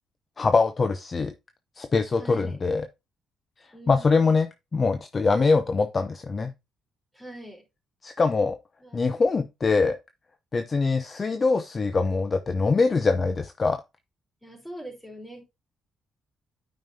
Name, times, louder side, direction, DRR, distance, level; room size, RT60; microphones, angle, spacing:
voice 1, 0.4-1.3 1.8-2.9 3.9-4.5 4.7-6.5 8.0-8.6 8.9-10.0 10.5-13.8, left 4 dB, 35° left, 0.6 m, -23 dB
voice 2, 2.1-2.6 3.7-4.5 7.1-7.6 8.8-9.1 14.4-15.4, right 1 dB, 10° left, 3.6 m, -42 dB
8.9 x 5.3 x 2.7 m
cardioid pair, 90°, 0 cm